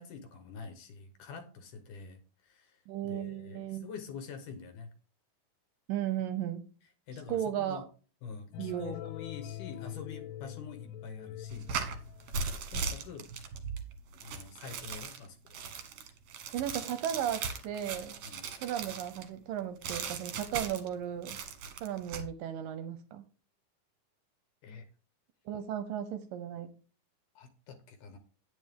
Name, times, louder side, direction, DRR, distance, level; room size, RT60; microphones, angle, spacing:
voice 1, 0.0-2.8 3.0-4.9 7.1-7.9 8.2-11.7 12.3-13.3 14.2-15.4 18.2-18.4 24.6-24.9 27.4-28.2, left 6 dB, 65° left, 7 dB, 2.3 m, -46 dB
voice 2, 2.9-3.9 5.9-6.7 7.3-7.8 8.6-8.9 16.5-18.2 18.6-21.4 21.8-23.2 25.5-26.7, right 10 dB, 80° right, 10 dB, 2.1 m, -35 dB
sound 1, 8.5-12.6, left 12 dB, 90° left, 2.6 m, -44 dB
sound 2, 11.5-19.3 19.8-20.9 21.2-22.3, right 5 dB, 60° right, 2.0 m, -38 dB
9.5 x 9.0 x 3.6 m, 0.37 s
omnidirectional pair, 4.5 m